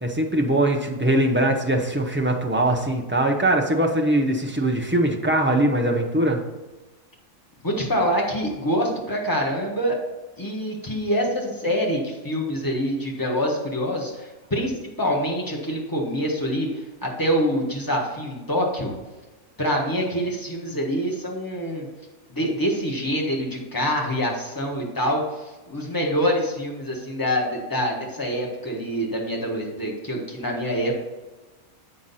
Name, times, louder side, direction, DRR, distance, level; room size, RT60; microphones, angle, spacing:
voice 1, 0.0-6.4, right 1 dB, 20° right, 0 dB, 0.3 m, -21 dB
voice 2, 7.6-10.0 10.4-16.7 17.0-18.9 19.6-21.9 22.3-31.0, equal, 15° left, -1 dB, 1.4 m, -25 dB
7.6 x 5.8 x 4.2 m, 1.2 s
omnidirectional pair, 1.5 m